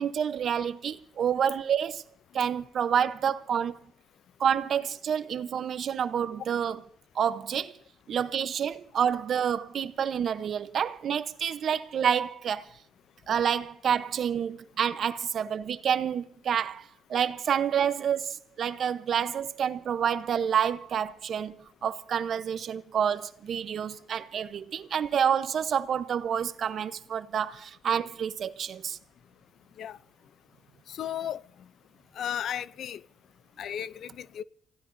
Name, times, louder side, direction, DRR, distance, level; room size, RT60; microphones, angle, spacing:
voice 1, 0.0-2.0 2.3-3.7 4.4-6.8 7.1-7.7 8.1-12.7 13.3-29.0, right 8 dB, 60° right, 0.8 m, -28 dB
voice 2, 30.9-31.4 32.2-33.0 33.6-34.4, left 10 dB, 70° left, 0.5 m, -34 dB
29.0 x 15.5 x 2.7 m
cardioid pair, 90°, 0 cm